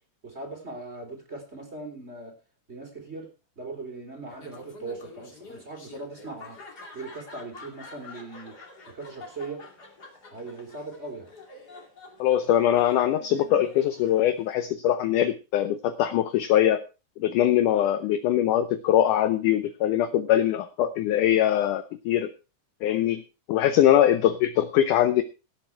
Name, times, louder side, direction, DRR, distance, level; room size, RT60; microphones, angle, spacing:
voice 1, 0.2-2.3 2.7-3.3 3.6-6.6 6.9-8.6 8.9-9.6 10.3-11.3, right 3 dB, 15° right, 2 dB, 3.3 m, -39 dB
Laughter, 4.3-14.7, left 3 dB, 30° left, 2.6 m, -47 dB
voice 2, 12.2-16.8 17.2-22.3 22.8-23.2 23.5-25.2, left 11 dB, 75° left, 11 dB, 1.9 m, -22 dB
17.0 x 8.1 x 4.6 m, 0.32 s
omnidirectional pair, 4.4 m